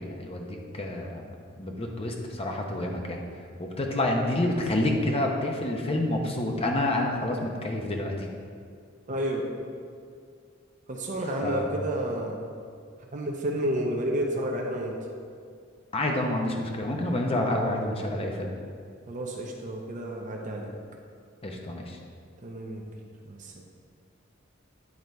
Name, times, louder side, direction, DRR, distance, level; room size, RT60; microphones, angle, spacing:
voice 1, 0.0-3.2 3.6-8.3 11.4-11.6 15.9-18.5 21.4-22.0, left 1 dB, 30° left, 1 dB, 0.8 m, -28 dB
voice 2, 9.1-9.5 10.9-12.4 13.0-15.0 19.1-20.8 22.4-23.6, right 1 dB, 40° right, 0 dB, 0.7 m, -31 dB
9.6 x 4.0 x 4.5 m, 2.2 s
head